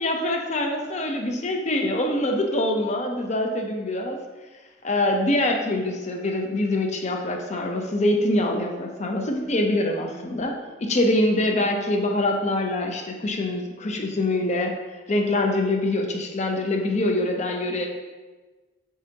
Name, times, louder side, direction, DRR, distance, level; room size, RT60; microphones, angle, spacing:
voice 1, 0.0-4.2 4.8-14.7 15.1-17.9, left 1 dB, 40° left, 2 dB, 0.7 m, -24 dB
6.9 x 4.8 x 2.8 m, 1.3 s
head